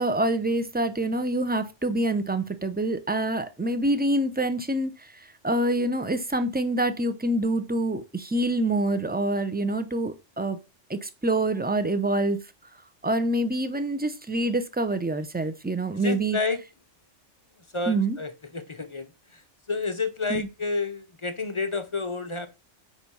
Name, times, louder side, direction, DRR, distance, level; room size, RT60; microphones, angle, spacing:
voice 1, 0.0-4.9 5.4-10.6 10.9-12.4 13.0-16.4 17.9-18.2 20.3-20.5, right 1 dB, 10° right, 0.5 m, -26 dB
voice 2, 15.9-16.6 17.7-19.4 19.7-22.5, left 3 dB, 35° left, 0.6 m, -30 dB
9.3 x 3.4 x 5.5 m
omnidirectional pair, 1.3 m